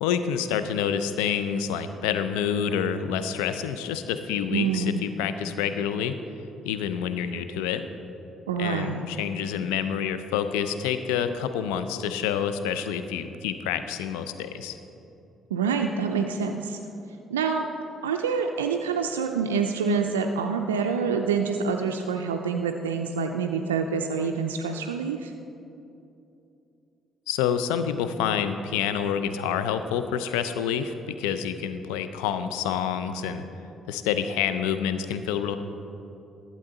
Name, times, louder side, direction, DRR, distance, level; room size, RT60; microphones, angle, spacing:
voice 1, 0.0-6.2 6.6-7.9 8.6-14.8 27.3-33.4 33.9-35.6, left 8 dB, 80° left, 10 dB, 0.4 m, -28 dB
voice 2, 4.5-5.1 8.5-9.0 15.5-16.8 17.3-17.7 18.0-25.3, right 5 dB, 90° right, 3 dB, 0.3 m, -26 dB
12.0 x 7.6 x 3.8 m, 2.8 s
hypercardioid pair, 50°, 0 cm